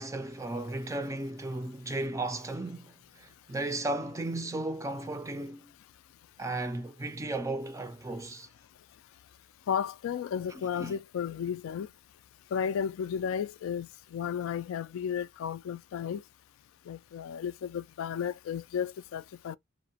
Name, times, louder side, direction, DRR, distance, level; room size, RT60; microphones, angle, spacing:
voice 1, 0.0-5.7 6.4-8.5 10.8-10.9, right 2 dB, 15° right, 0.3 m, -35 dB
voice 2, 9.7-11.9 12.5-16.2 16.9-19.6, left 8 dB, 85° left, 0.3 m, -33 dB
2.8 x 2.1 x 2.6 m
head